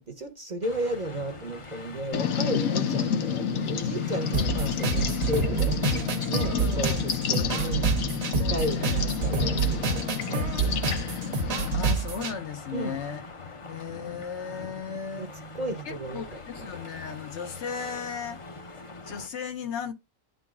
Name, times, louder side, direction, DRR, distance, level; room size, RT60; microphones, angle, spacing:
voice 1, 0.0-5.8 6.3-7.9 8.4-11.0 12.7-13.0 15.2-15.3 15.5-16.7, right 1 dB, 40° right, 0.8 m, -34 dB
sound 1, 0.6-19.3, left 3 dB, 30° left, 0.6 m, -43 dB
sound 2, 2.1-11.9, left 8 dB, 90° left, 1.1 m, -30 dB
sound 3, 4.3-12.3, right 4 dB, 90° right, 1.3 m, -28 dB
voice 2, 6.5-7.9 8.4-9.2 10.3-10.7 11.7-13.2 13.7-15.3 15.8-18.4 19.0-19.9, left 6 dB, 60° left, 1.0 m, -36 dB
11.0 x 3.9 x 2.4 m
omnidirectional pair, 1.4 m